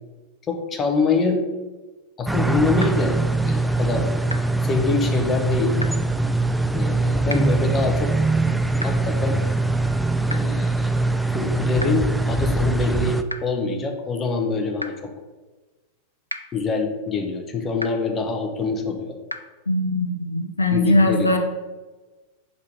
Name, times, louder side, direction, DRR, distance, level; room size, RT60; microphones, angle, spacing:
voice 1, 0.5-1.4 2.2-4.1 4.6-5.8 6.7-8.1 8.8-9.4 10.3-10.9 11.3-15.1 16.5-19.2 20.7-21.4, left 4 dB, 25° left, 4 dB, 0.9 m, -25 dB
sound 1, 2.3-13.2, right 2 dB, 5° right, 0.3 m, -22 dB
sound 2, 2.8-2.9 4.3-4.4 5.8-5.9 7.3-7.4 8.8-8.9 10.3-10.4 11.8-11.9 13.3-13.4 14.8-14.9 16.3-16.4 17.8-17.9 19.3-19.4, equal, 90° right, 0.4 m, -29 dB
voice 2, 19.7-21.4, left 1 dB, 80° left, 4 dB, 0.6 m, -20 dB
5.2 x 4.8 x 4.7 m, 1.2 s
figure-of-eight pair, 90°, 0 cm